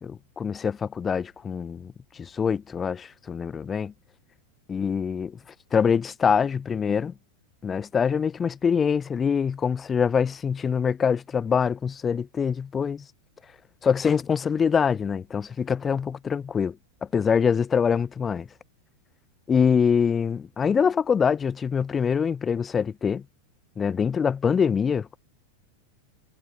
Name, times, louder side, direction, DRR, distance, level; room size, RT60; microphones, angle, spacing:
voice 1, 0.0-3.9 4.7-5.4 5.7-7.1 7.6-13.0 13.8-16.8 17.0-18.5 19.5-23.2 23.8-25.2, left 6 dB, 20° left, 1.4 m, -24 dB
figure-of-eight pair, 90°, 0 cm